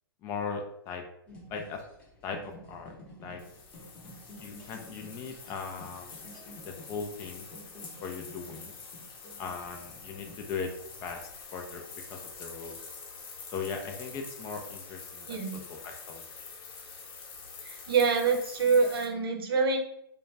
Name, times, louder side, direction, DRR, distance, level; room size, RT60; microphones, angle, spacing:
voice 1, 0.2-1.0 1.5-1.8 2.2-2.4 2.7-2.9 3.2-3.4 4.4-6.1 6.6-7.5 8.0-8.7 9.4-10.7 11.0-11.2 11.5-11.8 12.1-12.8 13.5-15.3 15.7-16.2, left 5 dB, 25° left, 4 dB, 0.4 m, -38 dB
sound 1, 1.3-11.4, left 1 dB, 10° left, 0.8 m, -51 dB
sound 2, 3.4-19.1, left 5 dB, 65° left, 0.9 m, -46 dB
voice 2, 15.3-15.6 17.6-19.8, right 5 dB, 70° right, 3 dB, 0.7 m, -26 dB
2.4 x 2.1 x 3.2 m, 0.75 s
hypercardioid pair, 140°, 13 cm